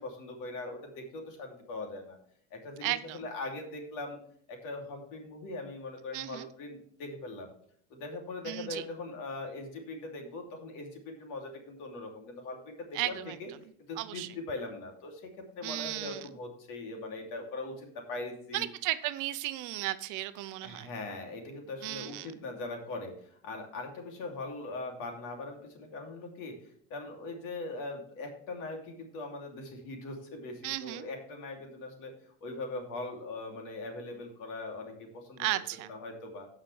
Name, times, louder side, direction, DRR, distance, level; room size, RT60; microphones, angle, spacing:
voice 1, 0.0-2.2 2.5-4.2 4.5-7.5 7.9-13.5 13.9-18.7 20.6-26.6 26.9-35.5 35.9-36.5, left 2 dB, 60° left, 2 dB, 2.9 m, -41 dB
voice 2, 2.8-3.2 6.1-6.5 8.4-8.9 12.9-13.4 14.0-14.3 15.6-16.3 18.5-20.9 21.8-22.3 30.6-31.1 35.4-35.9, right 16 dB, 55° right, 13 dB, 0.7 m, -35 dB
16.0 x 5.7 x 3.3 m, 0.64 s
cardioid pair, 135°, 36 cm